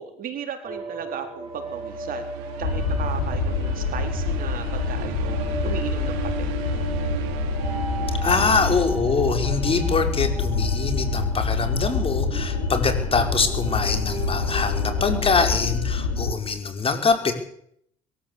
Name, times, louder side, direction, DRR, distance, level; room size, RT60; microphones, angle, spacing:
voice 1, 0.0-2.3 2.6-5.4 5.6-6.5, right 8 dB, 60° right, 6 dB, 4.2 m, -35 dB
sound 1, 0.6-15.6, right 1 dB, 30° right, 7.9 m, -38 dB
sound 2, 1.4-9.7, right 10 dB, 90° right, 3.1 m, -35 dB
sound 3, 2.6-16.3, left 4 dB, 90° left, 5.9 m, -26 dB
voice 2, 8.2-17.3, left 4 dB, 35° left, 6 dB, 5.2 m, -24 dB
22.5 x 14.0 x 8.4 m, 0.68 s
supercardioid pair, 85°, 17 cm